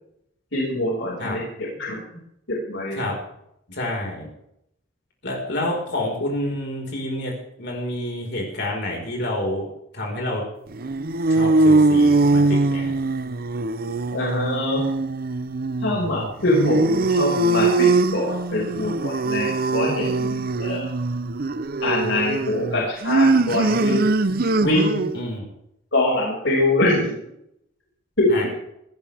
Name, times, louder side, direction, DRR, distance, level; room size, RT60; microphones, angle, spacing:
voice 1, 0.5-1.4 1.8-2.0 2.5-3.0 14.1-14.8 15.8-20.9 21.8-24.1 24.6-25.1 25.9-27.1 28.2-28.5, left 1 dB, 75° left, -3 dB, 5.9 m, -23 dB
voice 2, 3.7-4.3 5.2-9.7 9.9-10.5 11.3-12.9 25.1-25.4 28.3-28.5, left 1 dB, 60° left, 0 dB, 4.9 m, -28 dB
sound 1, 10.7-25.2, right 3 dB, 50° right, 0.8 m, -21 dB
20.0 x 16.0 x 3.6 m, 0.76 s
head